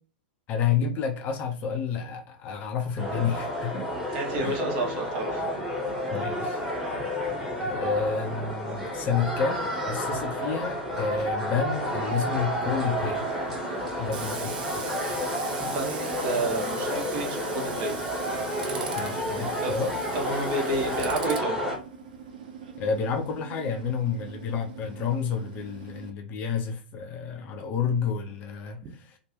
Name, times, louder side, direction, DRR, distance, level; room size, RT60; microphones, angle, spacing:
voice 1, 0.5-3.9 4.4-4.7 6.1-6.6 7.6-13.3 14.0-14.6 19.0-19.9 22.8-29.2, left 6 dB, 30° left, 4 dB, 0.5 m, -30 dB
sound 1, 3.0-21.8, equal, 5° right, 1.3 m, -31 dB
voice 2, 4.1-5.5 15.6-18.0 19.6-19.7 20.1-21.6, right 2 dB, 40° right, 1 dB, 1.1 m, -30 dB
Tools, 11.8-26.1, right 6 dB, 55° right, 0.5 m, -41 dB
2.9 x 2.5 x 2.9 m, 0.40 s
figure-of-eight pair, 95°, 5 cm